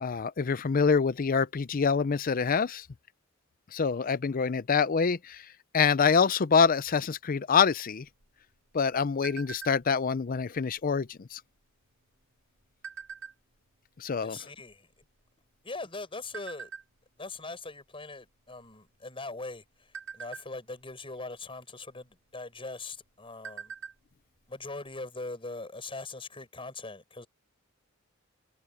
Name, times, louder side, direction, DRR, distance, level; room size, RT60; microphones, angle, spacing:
voice 1, 0.0-2.9 3.7-5.4 5.7-8.1 8.7-11.4 14.0-14.4, left 6 dB, 45° left, 0.5 m, -26 dB
sound 1, 8.0-10.0 10.5-10.8 11.1-11.4 12.1-13.7 14.3-14.4 14.6-15.8 16.3-16.8 17.4-17.6 17.9-18.1 18.6-19.1 19.5-20.9 22.0-22.1 22.6-22.7 23.0-24.1 24.4-24.5 24.8-25.0, right 6 dB, 75° right, 5.1 m, -43 dB
voice 2, 14.2-15.0 15.6-16.7 17.2-23.7 24.5-27.3, left 3 dB, 25° left, 6.2 m, -41 dB
head